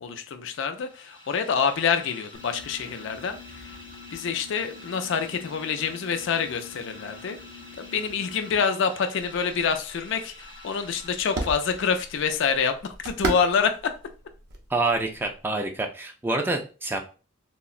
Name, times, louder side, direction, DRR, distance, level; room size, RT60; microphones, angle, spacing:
voice 1, 0.0-3.7 4.1-7.4 7.8-14.0, left 6 dB, 65° left, 8 dB, 0.4 m, -27 dB
sound 1, 0.7-12.6, left 1 dB, 25° left, 0.7 m, -47 dB
sound 2, 2.3-8.6, left 6 dB, 75° right, 1.3 m, -47 dB
sound 3, 9.2-15.5, right 2 dB, 55° right, 0.6 m, -37 dB
voice 2, 14.7-17.0, right 2 dB, 10° right, 3 dB, 0.3 m, -27 dB
3.6 x 2.0 x 2.4 m, 0.35 s
head